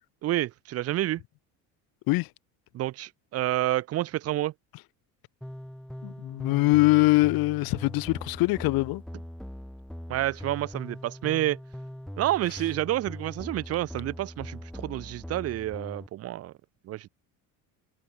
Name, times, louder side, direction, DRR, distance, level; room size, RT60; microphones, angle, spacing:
voice 1, 0.2-1.2 2.7-4.5 10.1-11.6 12.2-16.5 16.8-17.1, right 14 dB, 40° right, 0.6 m, -29 dB
sound 1, 5.4-16.1, equal, ahead, 2.4 m, -41 dB
voice 2, 6.0-9.0, left 21 dB, 65° left, 1.3 m, -23 dB
cardioid pair, 130°, 38 cm